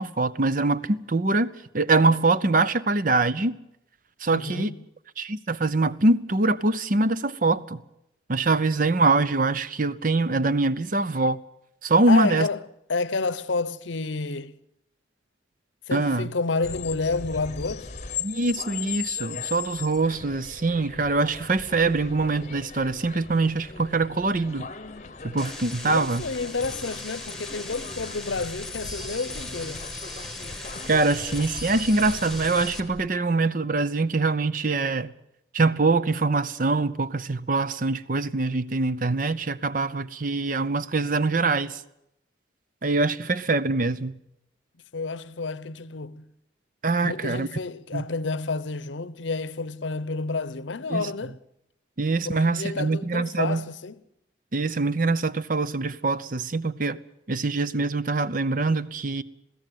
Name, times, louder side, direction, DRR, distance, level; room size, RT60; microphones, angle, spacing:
voice 1, 0.0-3.5 4.2-4.7 5.2-7.8 8.3-11.4 11.8-12.5 15.9-16.3 18.2-24.7 25.2-26.2 30.9-35.1 35.5-41.8 42.8-44.1 46.8-47.5 47.9-48.0 50.9-51.1 52.0-53.6 54.5-57.0 57.3-59.2, right 3 dB, 45° right, 0.7 m, -24 dB
voice 2, 4.3-4.8 12.1-12.6 12.9-14.6 15.9-17.9 25.8-29.9 44.9-46.3 47.0-51.4 52.2-54.0, left 3 dB, 75° left, 0.8 m, -30 dB
sound 1, 16.6-33.1, left 6 dB, 35° left, 0.9 m, -39 dB
sound 2, 25.4-32.8, left 2 dB, ahead, 1.4 m, -38 dB
21.5 x 16.0 x 9.3 m
head